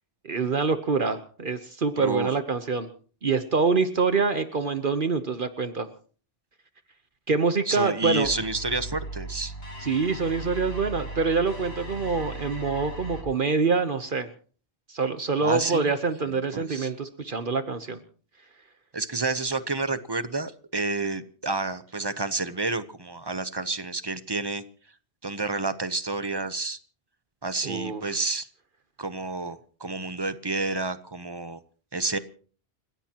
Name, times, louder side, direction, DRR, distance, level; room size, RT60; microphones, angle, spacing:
voice 1, 0.2-2.9 3.2-5.9 7.3-8.3 9.8-14.3 14.9-18.0 27.6-28.1, right 4 dB, 55° right, 9 dB, 1.2 m, -25 dB
voice 2, 2.0-2.3 7.7-9.5 15.4-15.9 16.5-16.9 18.9-24.6 25.2-26.8 27.4-28.5 29.0-31.6 31.9-32.2, right 3 dB, 25° right, 12 dB, 0.9 m, -29 dB
sound 1, 8.2-13.2, right 1 dB, 80° left, 4.3 m, -38 dB
29.5 x 16.0 x 3.0 m, 0.42 s
omnidirectional pair, 1.0 m